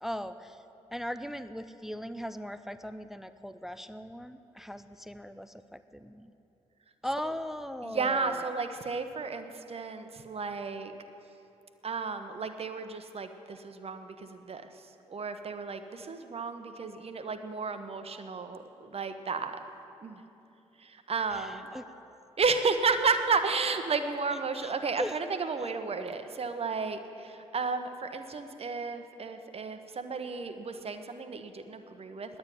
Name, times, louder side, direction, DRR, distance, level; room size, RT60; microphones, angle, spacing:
voice 1, 0.0-0.6 0.9-6.3 7.0-8.5 21.3-21.8 24.6-24.7 25.0-25.2, equal, ahead, 12 dB, 0.5 m, -38 dB
voice 2, 7.8-10.9 11.8-19.6 20.0-20.2 20.8-21.7 22.4-32.4, right 4 dB, 40° right, 8 dB, 1.0 m, -33 dB
9.7 x 9.4 x 10.0 m, 2.9 s
figure-of-eight pair, 40°, 16 cm